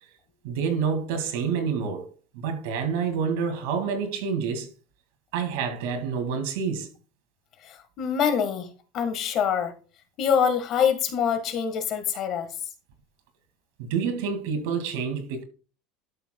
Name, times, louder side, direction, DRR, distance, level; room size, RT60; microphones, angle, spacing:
voice 1, 0.4-2.1 2.3-4.7 5.3-6.9 13.8-15.4, right 6 dB, 80° right, 2.0 m, -28 dB
voice 2, 7.7-8.7 8.9-9.7 10.2-12.5, left 7 dB, 40° left, 1.4 m, -25 dB
12.0 x 6.9 x 2.2 m
cardioid pair, 155°, 0 cm